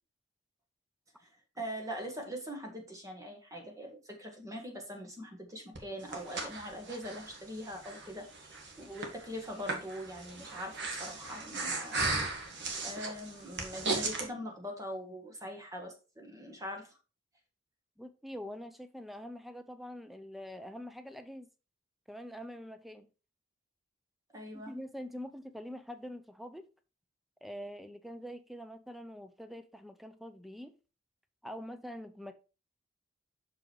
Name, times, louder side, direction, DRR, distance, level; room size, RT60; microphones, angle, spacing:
voice 1, 1.6-8.3 8.8-12.2 12.8-16.9 24.3-24.7, equal, 15° right, 1.6 m, -42 dB
Breathing, 5.7-14.3, right 3 dB, 60° right, 1.6 m, -37 dB
voice 2, 18.0-21.5 22.1-23.1 24.5-26.6 27.4-30.7 31.4-32.3, equal, ahead, 0.5 m, -44 dB
6.2 x 5.0 x 4.6 m
head